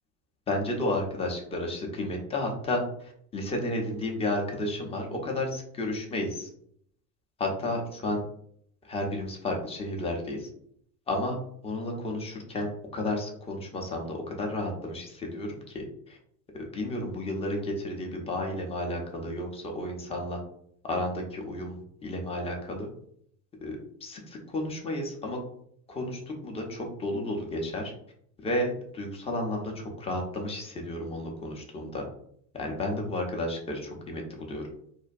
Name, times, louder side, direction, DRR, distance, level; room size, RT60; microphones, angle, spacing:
voice 1, 0.5-6.5 7.4-8.2 8.8-10.5 11.1-11.4 11.6-16.2 16.7-20.4 20.8-22.9 23.6-25.4 25.9-27.9 28.4-32.0 32.5-34.6, left 1 dB, 15° left, 1 dB, 0.4 m, -32 dB
2.5 x 2.1 x 2.5 m, 0.69 s
hypercardioid pair, 80°, 46 cm